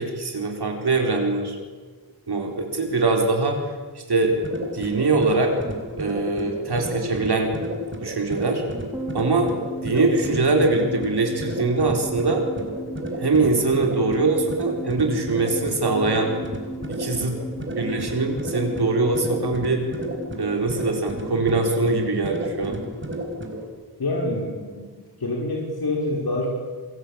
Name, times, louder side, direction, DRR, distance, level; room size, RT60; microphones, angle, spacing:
voice 1, 0.0-1.6 2.3-4.4 4.7-5.6 6.0-7.5 8.0-8.6 9.1-9.6 9.8-12.4 13.2-16.3 16.9-17.4 17.7-19.8 20.4-22.8, right 3 dB, 70° right, 2 dB, 4.4 m, -22 dB
sound 1, 4.2-23.7, equal, 30° right, 4.7 m, -33 dB
sound 2, 8.9-21.5 21.7-21.8, equal, 5° right, 5.1 m, -37 dB
voice 2, 24.0-24.9 25.2-26.5, left 2 dB, 65° left, -1 dB, 5.3 m, -26 dB
27.0 x 23.0 x 8.9 m, 1.5 s
wide cardioid pair, 110°, 40 cm